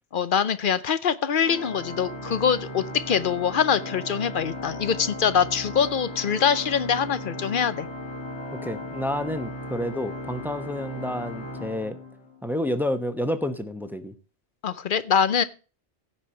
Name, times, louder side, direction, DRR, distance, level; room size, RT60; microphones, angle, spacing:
voice 1, 0.1-7.9 14.6-15.4, left 7 dB, 55° left, 14 dB, 0.8 m, -24 dB
Organ, 1.4-12.5, left 1 dB, 80° left, 2.2 m, -37 dB
voice 2, 8.5-12.0 12.4-14.1, left 1 dB, ahead, 9 dB, 0.8 m, -29 dB
16.0 x 5.5 x 4.3 m, 0.34 s
omnidirectional pair, 1.1 m